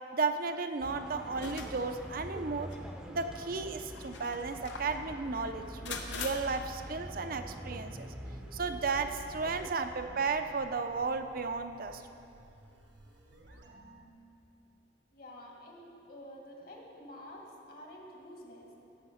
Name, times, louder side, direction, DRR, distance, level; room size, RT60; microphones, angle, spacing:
voice 1, 0.1-2.7 3.1-8.1 8.5-12.0, right 4 dB, 55° right, 8 dB, 0.6 m, -34 dB
sound 1, 0.8-9.7, equal, 5° right, 0.7 m, -45 dB
sound 2, 1.3-2.0 2.7-2.8 3.8-5.0 5.9-6.3, left 5 dB, 90° left, 1.1 m, -42 dB
sound 3, 7.1-14.1, right 1 dB, 80° right, 1.3 m, -54 dB
voice 2, 15.1-18.8, left 1 dB, 55° left, -1 dB, 2.0 m, -49 dB
14.0 x 7.9 x 5.6 m, 2.8 s
head